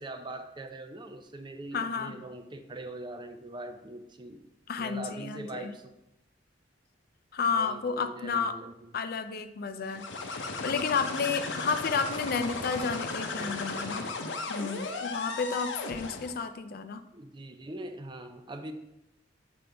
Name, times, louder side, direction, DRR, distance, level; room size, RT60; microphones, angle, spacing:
voice 1, 0.0-4.4 4.8-5.9 7.5-8.9 13.3-13.9 17.1-18.7, right 1 dB, 25° right, 7 dB, 0.5 m, -42 dB
voice 2, 1.7-2.2 4.7-5.7 7.3-8.5 8.9-10.0 10.3-14.1 14.5-17.0, left 5 dB, 55° left, 10 dB, 0.4 m, -31 dB
sound 1, 9.9-16.4, left 3 dB, 85° left, 0.8 m, -36 dB
7.7 x 5.2 x 3.4 m, 0.88 s
head